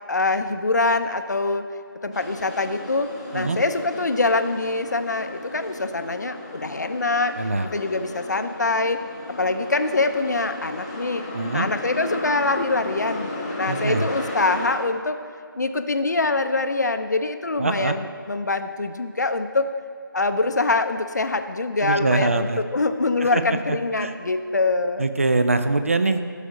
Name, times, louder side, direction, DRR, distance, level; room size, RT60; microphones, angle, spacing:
voice 1, 0.1-1.7 2.0-7.3 7.7-9.0 9.4-11.2 11.5-15.2 15.5-19.7 20.1-25.1, left 3 dB, 50° left, 9 dB, 0.6 m, -24 dB
sound 1, 2.1-14.7, left 2 dB, 15° left, 0.8 m, -35 dB
voice 2, 7.4-7.7 11.3-11.7 13.7-14.1 17.6-17.9 21.8-22.6 23.2-23.4 23.7-24.1 25.0-26.2, right 3 dB, 35° right, 9 dB, 0.5 m, -23 dB
12.5 x 5.0 x 5.1 m, 2.2 s
figure-of-eight pair, 165°, 12 cm